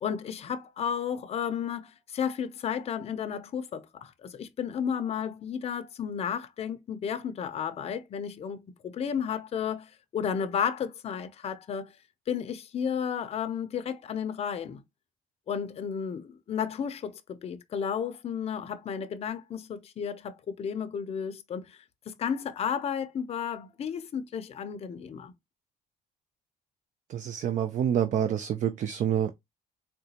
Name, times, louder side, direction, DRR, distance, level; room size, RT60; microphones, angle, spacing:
voice 1, 0.0-12.0 12.3-14.8 15.5-25.3, left 7 dB, 35° left, 0.5 m, -33 dB
voice 2, 27.1-29.3, right 9 dB, 50° right, 0.4 m, -27 dB
3.8 x 2.2 x 2.8 m
cardioid pair, 110°, 17 cm